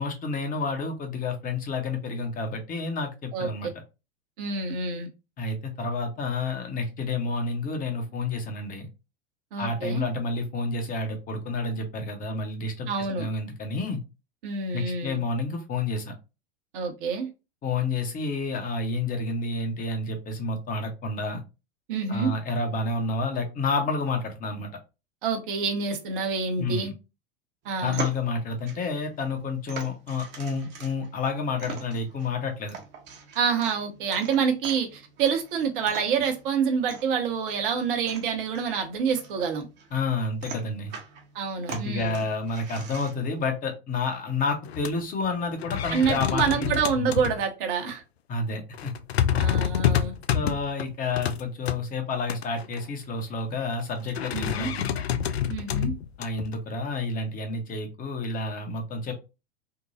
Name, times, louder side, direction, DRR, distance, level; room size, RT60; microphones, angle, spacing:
voice 1, 0.0-3.7 5.4-8.9 9.6-12.9 13.2-14.0 14.7-16.1 17.6-21.4 22.1-24.7 26.6-26.9 27.8-32.8 39.9-40.9 41.7-46.7 47.0-47.1 48.3-48.9 50.3-54.9 56.2-59.1, left 3 dB, 25° left, 4 dB, 1.0 m, -30 dB
voice 2, 3.3-3.7 4.4-5.1 9.5-10.0 12.9-13.3 14.4-15.2 16.7-17.3 21.9-22.3 25.2-26.9 27.6-28.0 33.3-39.7 41.3-42.2 45.9-48.0 49.4-50.1 54.3-54.7 55.5-55.9, right 6 dB, 55° right, 4 dB, 1.0 m, -27 dB
sound 1, 27.6-43.4, right 5 dB, 35° right, 0.9 m, -43 dB
sound 2, 44.6-44.9 45.2-45.3 45.6-47.4 47.9-48.0 48.7-51.8 52.3-52.8 54.1-56.5, left 9 dB, 80° left, 0.5 m, -27 dB
3.7 x 2.3 x 2.7 m, 0.28 s
hypercardioid pair, 95°, 31 cm